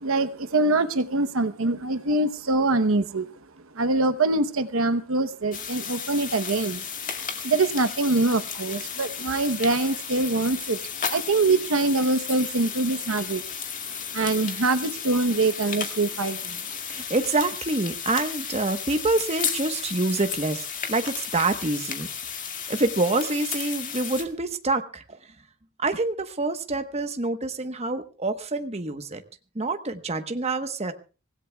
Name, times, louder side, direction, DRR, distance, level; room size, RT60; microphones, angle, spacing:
voice 1, 0.0-3.3 3.8-6.8 7.4-10.8 11.1-13.4 14.1-16.6, right 2 dB, 65° right, 11 dB, 0.9 m, -24 dB
sound 1, 5.5-24.2, left 7 dB, 35° left, 2.1 m, -34 dB
voice 2, 16.9-22.1 22.7-25.2 25.8-29.2 29.5-30.9, right 2 dB, 30° right, 7 dB, 1.1 m, -26 dB
25.0 x 17.0 x 2.3 m, 0.35 s
head